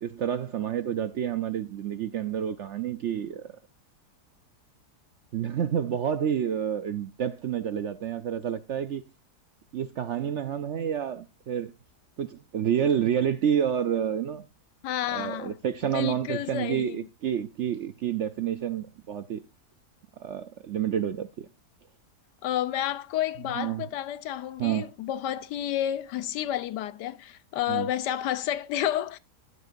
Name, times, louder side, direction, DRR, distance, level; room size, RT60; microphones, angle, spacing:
voice 1, 0.0-3.4 5.3-9.0 9.7-11.7 12.2-14.4 15.1-19.4 20.2-21.5 23.6-23.8 24.6-24.9 27.7-27.9, right 9 dB, 65° right, 0.7 m, -29 dB
voice 2, 14.8-15.5 15.8-17.1 22.4-29.2, left 12 dB, 85° left, 1.3 m, -30 dB
11.5 x 8.2 x 2.6 m
omnidirectional pair, 1.8 m